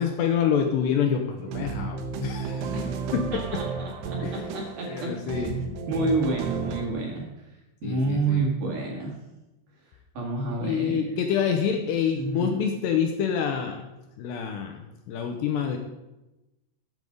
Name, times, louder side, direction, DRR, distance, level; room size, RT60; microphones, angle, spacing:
voice 1, 0.0-2.7 3.1-3.4 4.2-4.4 4.9-5.6 7.8-8.4 10.6-13.9 14.2-15.8, left 7 dB, 75° left, 4 dB, 2.7 m, -27 dB
sound 1, 1.4-6.9, right 5 dB, 70° right, 2.8 m, -32 dB
voice 2, 3.3-7.2 7.8-9.1 10.1-11.2 12.2-12.6, right 3 dB, 55° right, -1 dB, 2.9 m, -29 dB
14.0 x 8.0 x 5.3 m, 0.99 s
omnidirectional pair, 5.6 m